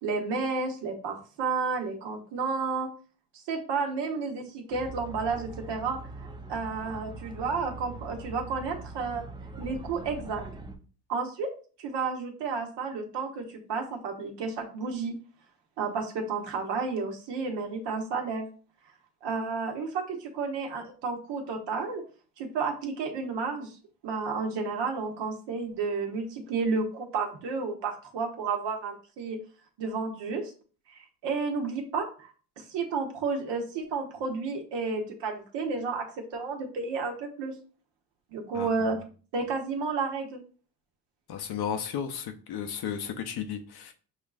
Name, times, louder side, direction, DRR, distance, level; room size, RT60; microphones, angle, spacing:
voice 1, 0.0-2.9 3.5-6.0 6.5-9.2 9.6-10.5 11.1-11.5 11.8-15.1 15.8-18.5 19.2-22.0 22.4-23.8 24.0-29.4 29.8-30.5 30.9-32.3 32.6-36.1 36.3-37.5 38.3-39.0 39.3-40.4, right 4 dB, 65° right, 1.2 m, -31 dB
sound 1, 4.7-10.8, right 2 dB, 10° right, 0.5 m, -42 dB
voice 2, 41.3-43.9, left 8 dB, 60° left, 0.8 m, -34 dB
6.4 x 2.5 x 2.4 m
supercardioid pair, 70°, 45 cm